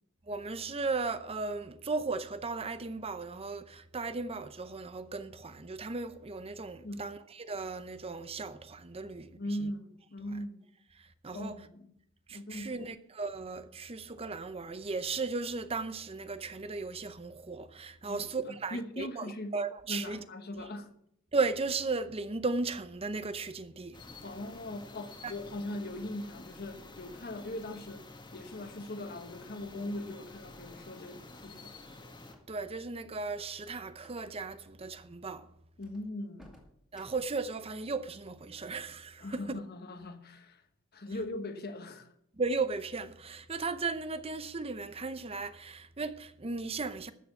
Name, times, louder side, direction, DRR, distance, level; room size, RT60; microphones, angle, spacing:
voice 1, 0.3-9.3 9.6-9.7 10.3-10.4 11.0-11.6 12.3-20.2 20.6-20.7 21.3-24.0 25.2-25.3 32.5-35.5 36.9-39.6 42.3-47.1, right 4 dB, 30° right, 0.7 m, -36 dB
voice 2, 9.4-10.6 11.3-11.9 12.3-12.8 18.0-19.6 19.9-20.9 24.2-31.8 35.8-36.5 39.2-40.6 40.9-42.1, left 1 dB, 50° left, 1.3 m, -40 dB
sound 1, 23.9-32.3, left 2 dB, 20° left, 1.5 m, -50 dB
sound 2, 32.3-32.7 33.9-34.3 34.5-34.7 35.3-35.4 35.8-37.5, equal, 5° right, 2.3 m, -60 dB
13.0 x 6.9 x 7.0 m
head